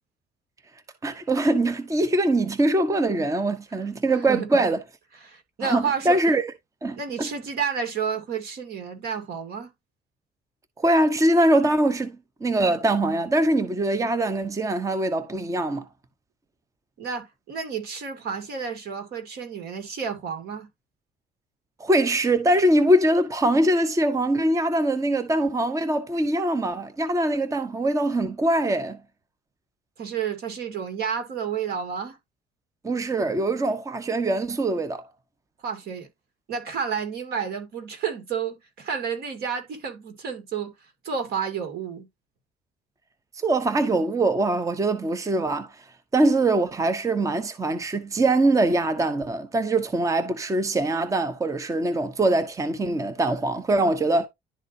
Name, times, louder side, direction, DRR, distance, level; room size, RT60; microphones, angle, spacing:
voice 1, 1.0-4.8 5.6-6.4 6.8-7.3 10.8-12.1 12.4-15.8 21.8-29.0 32.8-35.1 43.4-45.8 46.1-54.3, right 1 dB, 20° right, 0.8 m, -23 dB
voice 2, 4.1-4.5 5.2-6.2 7.0-9.7 17.0-20.7 30.0-32.2 35.6-36.1 36.5-40.7 41.0-42.1, right 6 dB, 70° right, 2.3 m, -30 dB
11.0 x 3.9 x 2.6 m
cardioid pair, 110°, 17 cm